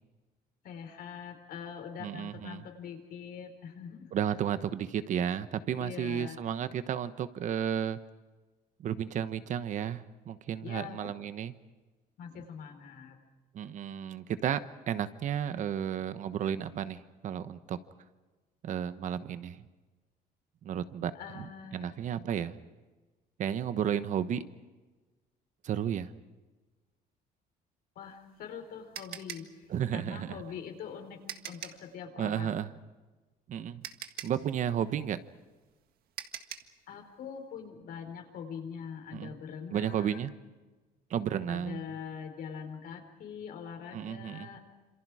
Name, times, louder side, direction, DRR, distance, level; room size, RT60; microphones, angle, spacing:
voice 1, 0.6-4.1 5.8-6.4 10.6-11.0 12.2-13.2 21.1-22.0 27.9-32.7 36.9-40.3 41.5-44.6, left 7 dB, 65° left, 5 dB, 4.5 m, -43 dB
voice 2, 2.0-2.6 4.1-8.0 8.8-11.5 13.5-17.8 18.6-19.6 20.6-22.6 23.4-24.4 25.6-26.1 29.7-30.4 32.2-32.7 33.5-33.9 34.2-35.2 39.1-39.3 39.7-40.3 41.1-41.8 43.9-44.5, right 9 dB, 50° right, 12 dB, 1.2 m, -33 dB
sound 1, 28.0-31.9 33.3-33.4 33.8-36.8, right 10 dB, 70° right, 1.8 m, -44 dB
28.0 x 27.5 x 5.0 m, 1.2 s
cardioid pair, 165°, 16 cm